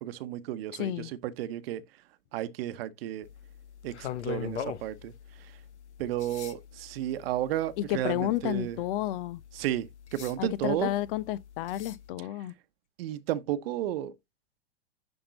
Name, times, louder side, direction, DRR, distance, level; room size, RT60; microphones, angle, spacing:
voice 1, 0.0-1.8 2.3-3.3 3.8-5.1 6.0-8.8 9.5-9.9 10.1-10.9 13.0-14.1, right 12 dB, 60° right, 1.0 m, -32 dB
voice 2, 0.7-1.1 7.8-9.4 10.4-12.5, left 13 dB, 55° left, 0.6 m, -31 dB
sound 1, 3.2-12.1, left 9 dB, 85° left, 1.0 m, -43 dB
10.5 x 3.6 x 4.0 m
hypercardioid pair, 115°, 33 cm